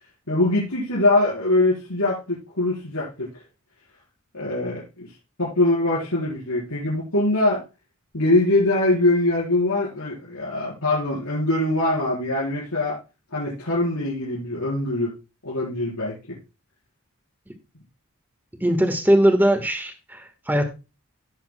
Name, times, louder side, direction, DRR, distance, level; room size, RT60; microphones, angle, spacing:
voice 1, 0.3-3.3 4.3-5.1 5.4-7.6 8.1-13.0 13.3-15.1 15.4-16.4, left 2 dB, 85° left, -7 dB, 4.3 m, -23 dB
voice 2, 18.6-20.7, right 1 dB, 10° right, 6 dB, 1.4 m, -20 dB
17.0 x 7.1 x 2.2 m, 0.28 s
head